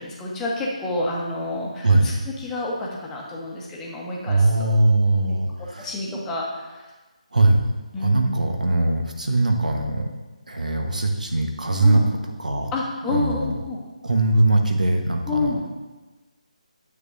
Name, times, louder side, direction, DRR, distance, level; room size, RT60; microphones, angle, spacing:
voice 1, 0.0-2.1 2.4-4.7 5.3-5.4 5.8-6.9 7.9-8.4 11.8-12.0 12.7-13.8 15.3-15.6, left 2 dB, 10° left, -4 dB, 1.1 m, -29 dB
voice 2, 4.3-6.2 7.3-7.6 8.0-10.1 10.5-12.0 12.4-12.7 13.1-13.6 14.0-15.7, right 2 dB, 80° right, 3 dB, 1.1 m, -21 dB
9.8 x 7.1 x 2.6 m, 1.2 s
figure-of-eight pair, 155°, 4 cm